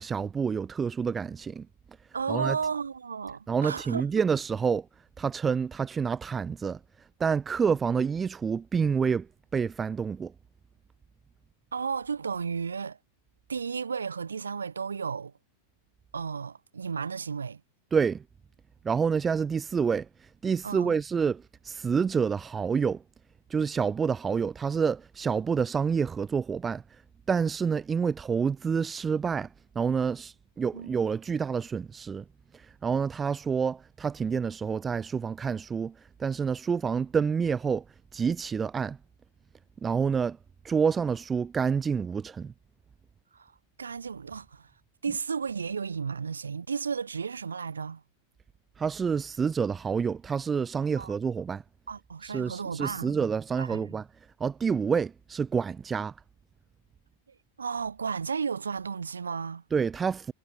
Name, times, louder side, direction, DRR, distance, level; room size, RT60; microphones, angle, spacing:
voice 1, 0.0-1.7 2.3-2.6 3.5-4.9 5.2-6.8 7.2-9.3 9.5-10.3 17.9-18.2 18.8-20.1 20.4-23.0 23.5-26.8 27.3-29.5 29.8-32.2 32.5-35.9 36.2-37.8 38.1-39.0 39.8-40.4 40.6-42.5 48.8-51.6 52.2-54.0 54.4-56.1 59.7-60.3, right 6 dB, 20° right, 0.4 m, -28 dB
voice 2, 2.1-4.1 11.7-13.0 13.5-15.3 16.1-17.6 20.6-20.9 30.7-30.9 43.3-43.5 43.8-44.7 45.0-48.0 51.0-51.1 51.9-53.2 53.6-53.8 57.6-59.6, right 6 dB, 75° right, 2.8 m, -33 dB
figure-of-eight pair, 90°, 0 cm